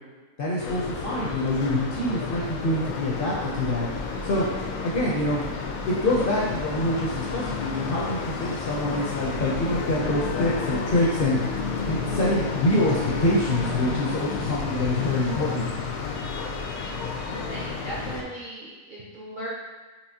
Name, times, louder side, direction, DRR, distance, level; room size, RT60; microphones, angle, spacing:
voice 1, 0.4-3.9 4.2-4.4 4.8-5.4 5.9-11.4 11.9-15.7, left 1 dB, 60° left, -5 dB, 0.6 m, -25 dB
sound 1, 0.6-18.2, left 4 dB, 85° left, 1.0 m, -31 dB
voice 2, 17.1-19.5, right 1 dB, 60° right, -6 dB, 0.5 m, -38 dB
4.7 x 2.9 x 2.7 m, 1.3 s
omnidirectional pair, 1.5 m